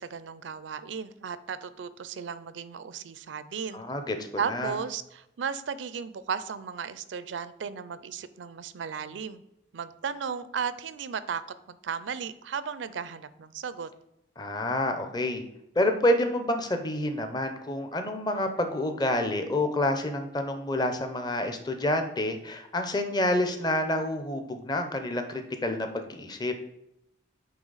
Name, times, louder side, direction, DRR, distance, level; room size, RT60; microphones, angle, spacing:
voice 1, 0.0-3.8 4.4-9.4 9.7-11.4 11.7-13.9, right 6 dB, 80° right, 14 dB, 0.4 m, -35 dB
voice 2, 3.7-4.2 4.5-4.7 14.4-15.4 15.8-26.5, left 1 dB, 20° left, 7 dB, 0.6 m, -28 dB
8.8 x 3.2 x 4.0 m, 0.83 s
head